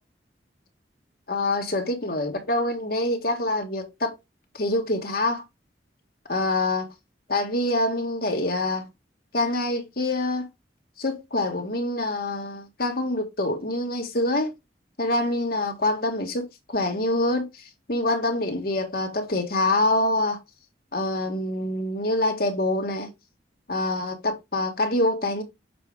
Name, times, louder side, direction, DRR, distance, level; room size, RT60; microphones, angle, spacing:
voice 1, 1.3-4.2 4.5-5.4 6.3-6.9 7.3-8.9 9.3-10.5 11.0-14.5 15.0-20.4 20.9-23.1 23.7-25.4, left 2 dB, 55° left, 1.6 m, -25 dB
6.8 x 4.6 x 3.6 m
head